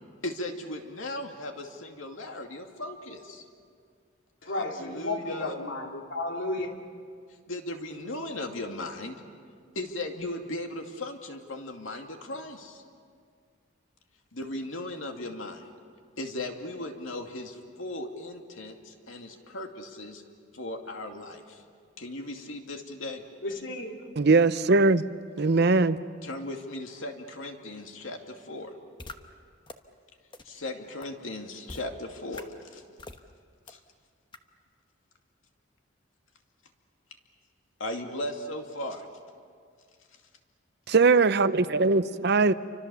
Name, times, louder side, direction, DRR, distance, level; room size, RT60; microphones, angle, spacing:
voice 1, 0.2-3.5 4.4-5.6 7.5-9.2 9.7-12.8 14.3-15.7 16.2-20.2 20.5-21.6 22.0-23.2 26.2-28.7 30.4-32.8 33.7-33.8 37.8-39.1, left 1 dB, 90° left, 2.5 m, -37 dB
voice 2, 4.4-6.7 23.4-24.0, left 2 dB, 70° left, 2.9 m, -33 dB
voice 3, 24.2-25.0 25.4-26.0 40.9-42.5, right 3 dB, 55° right, 0.7 m, -21 dB
sound 1, 29.0-29.1 29.7-29.8 30.3-30.4 31.0-31.1 31.7-31.8 32.3-32.4 33.0-33.2 33.7-33.8 34.3-34.4, left 2 dB, 25° left, 1.1 m, -42 dB
29.5 x 25.0 x 7.1 m
head